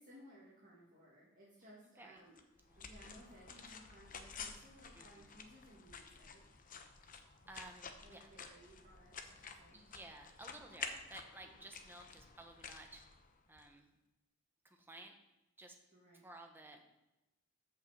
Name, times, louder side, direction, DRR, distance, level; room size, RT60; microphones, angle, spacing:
voice 1, 0.0-2.4 2.8-6.4 8.0-9.8 11.4-11.6 15.9-16.3, equal, 45° right, -6 dB, 2.0 m, -60 dB
sound 1, 2.4-13.7, left 5 dB, 40° left, 0.8 m, -51 dB
voice 2, 4.9-5.3 7.0-7.1 7.5-8.3 9.7-13.0 13.5-13.9 14.6-15.1 15.6-15.7 16.2-16.8, right 2 dB, 10° right, 2 dB, 1.1 m, -55 dB
7.0 x 5.5 x 7.2 m, 0.95 s
head